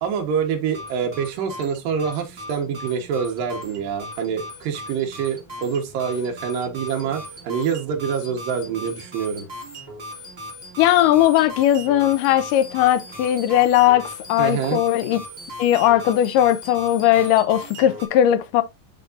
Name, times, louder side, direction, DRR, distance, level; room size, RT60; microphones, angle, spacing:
voice 1, 0.0-9.5 14.4-14.8, right 7 dB, 75° right, 2.9 m, -26 dB
sound 1, 0.6-18.1, equal, 25° right, 1.3 m, -38 dB
voice 2, 10.8-15.2 15.6-18.6, left 12 dB, 80° left, 2.1 m, -18 dB
10.5 x 3.6 x 2.5 m
omnidirectional pair, 4.0 m